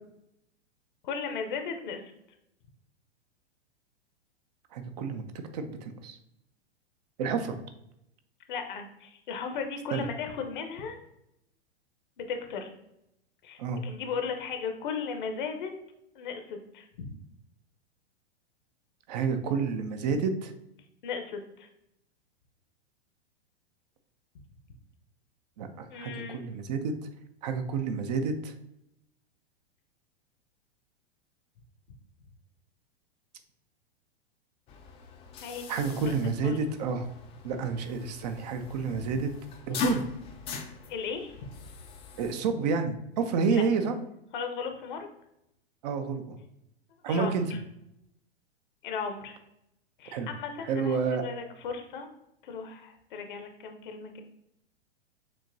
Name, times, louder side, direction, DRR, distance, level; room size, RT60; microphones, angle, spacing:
voice 1, 1.0-2.0 8.5-11.0 12.2-12.7 13.4-15.7 16.1-17.1 21.0-21.7 25.9-26.4 35.4-36.2 36.4-36.6 40.9-41.3 43.5-43.6 44.3-45.1 47.1-47.6 48.8-49.4 50.0-52.1 52.4-54.2, left 5 dB, 50° left, 5 dB, 0.9 m, -36 dB
voice 2, 4.7-5.2 5.5-6.2 7.2-7.6 9.9-10.0 13.6-13.8 19.1-20.5 25.6-26.9 27.4-28.5 35.7-37.1 37.4-39.3 39.7-40.0 42.2-44.0 45.8-46.4 47.0-47.5 50.1-50.3 50.6-51.2, right 5 dB, 40° right, 7 dB, 0.6 m, -29 dB
sound 1, 34.7-42.4, left 6 dB, 20° left, 0.5 m, -40 dB
6.8 x 2.9 x 2.6 m, 0.82 s
figure-of-eight pair, 100°, 32 cm